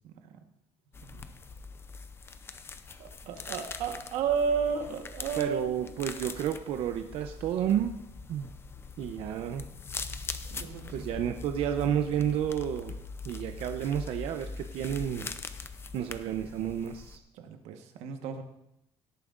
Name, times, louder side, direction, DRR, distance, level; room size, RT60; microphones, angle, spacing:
sound 1, 0.9-17.2, left 4 dB, 20° left, 0.5 m, -42 dB
voice 1, 1.0-1.3 3.0-5.6 9.0-9.2 10.5-11.1 17.3-18.4, right 6 dB, 85° right, 5 dB, 1.3 m, -33 dB
voice 2, 5.3-7.9 8.3-8.5 9.0-9.7 10.5-13.0 13.2-15.3 15.9-17.2, right 10 dB, 60° right, 6 dB, 0.6 m, -31 dB
17.0 x 9.0 x 2.5 m, 0.82 s
cardioid pair, 145°, 11 cm